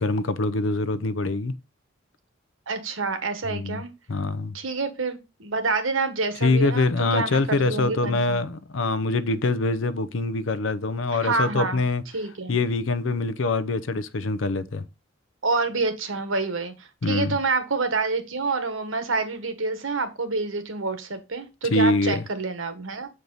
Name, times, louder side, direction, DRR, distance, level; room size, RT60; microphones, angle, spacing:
voice 1, 0.0-1.5 3.5-3.8 4.1-4.6 6.4-12.0 12.5-14.8 17.0-17.4 21.7-22.2, left 3 dB, 70° left, 0.7 m, -24 dB
voice 2, 2.7-3.9 4.5-8.4 11.1-11.8 12.1-12.6 15.4-23.1, right 3 dB, 75° right, 1.3 m, -27 dB
7.0 x 4.7 x 3.9 m
head